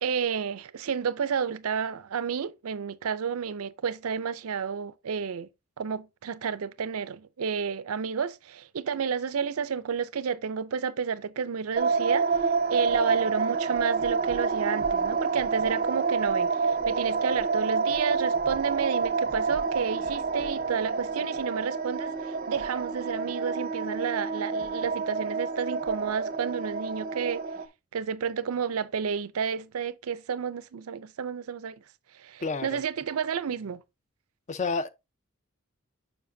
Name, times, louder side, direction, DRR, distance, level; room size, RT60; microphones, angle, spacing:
voice 1, 0.0-5.5 5.8-12.4 12.7-27.4 27.9-31.8 32.2-33.8, right 6 dB, 90° right, 0.5 m, -31 dB
sound 1, 11.8-27.7, right 4 dB, 40° right, 0.5 m, -28 dB
voice 2, 32.4-32.8 34.5-34.9, left 4 dB, 35° left, 0.4 m, -29 dB
7.1 x 5.5 x 2.6 m
head